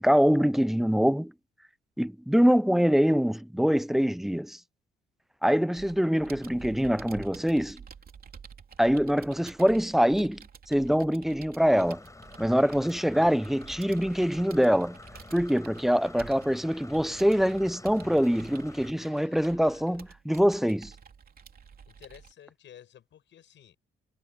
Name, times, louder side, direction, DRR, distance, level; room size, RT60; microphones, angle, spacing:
voice 1, 0.0-1.3 2.0-4.6 5.4-7.8 8.8-10.4 10.7-12.0 12.4-15.0 15.3-20.9, equal, ahead, 0.4 m, -24 dB
Computer keyboard, 5.8-22.3, right 6 dB, 50° right, 3.1 m, -50 dB
Engine / Mechanisms, 11.6-18.9, left 2 dB, 15° left, 5.2 m, -48 dB
voice 2, 19.0-20.0 21.9-23.8, left 10 dB, 65° left, 7.8 m, -53 dB
cardioid pair, 90°, 20 cm